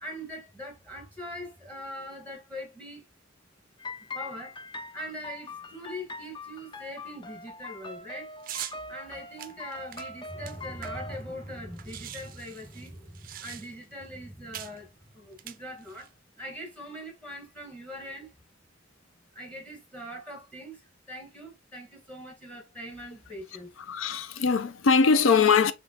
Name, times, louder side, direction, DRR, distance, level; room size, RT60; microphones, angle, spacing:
voice 1, 0.0-3.0 4.1-4.6 4.9-8.3 8.9-14.9 15.1-16.1 16.4-18.3 19.3-20.8 21.1-23.9, equal, 5° left, 1.3 m, -41 dB
sound 1, 3.8-11.2, left 2 dB, 25° left, 0.4 m, -42 dB
sound 2, 8.4-8.8 9.4-11.2 11.5-11.6 11.8-13.9 14.5-14.8 15.3-16.1, right 12 dB, 45° right, 0.4 m, -42 dB
voice 2, 23.8-25.7, left 5 dB, 80° left, 0.5 m, -22 dB
5.1 x 3.2 x 2.8 m
head